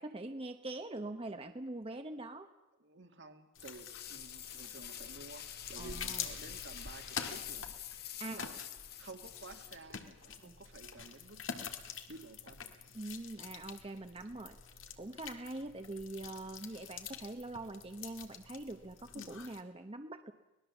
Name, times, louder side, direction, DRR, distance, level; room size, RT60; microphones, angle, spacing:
voice 1, 0.0-2.5 5.8-6.3 8.2-8.4 10.4-10.5 12.9-14.6 15.0-20.3, right 2 dB, 30° right, 7 dB, 0.9 m, -43 dB
voice 2, 2.8-7.8 8.2-8.6 9.0-11.8 12.1-12.7, right 2 dB, 65° right, 5 dB, 2.1 m, -52 dB
sound 1, 3.5-19.6, left 7 dB, 85° left, 1.9 m, -47 dB
sound 2, 3.6-10.3, left 10 dB, 55° left, 1.6 m, -47 dB
25.0 x 19.0 x 7.2 m, 1.0 s
head